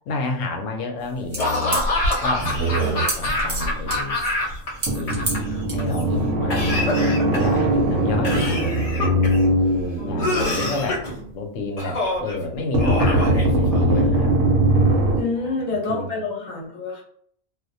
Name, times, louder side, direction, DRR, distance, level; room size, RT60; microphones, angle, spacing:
voice 1, 0.1-1.8 2.2-4.2 4.9-9.2 10.1-11.0 11.3-14.3 15.4-15.5 15.9-16.1, left 2 dB, 85° left, 3 dB, 1.0 m, -29 dB
sound 1, 1.0-6.2, right 2 dB, 35° right, 0.8 m, -32 dB
Laughter / Cough, 1.4-4.7 5.0-5.8 6.5-7.6 8.2-9.4 10.2-11.1 11.8-12.4 12.8-14.0, left 2 dB, 60° left, 0.3 m, -26 dB
sound 2, 1.8-3.8 4.5-4.6 4.9-11.3 12.7-15.2, right 1 dB, 75° right, 0.9 m, -21 dB
voice 2, 2.4-3.0 10.0-10.8 15.2-17.0, left 3 dB, 45° left, -2 dB, 0.8 m, -29 dB
2.3 x 2.1 x 2.6 m, 0.63 s
omnidirectional pair, 1.3 m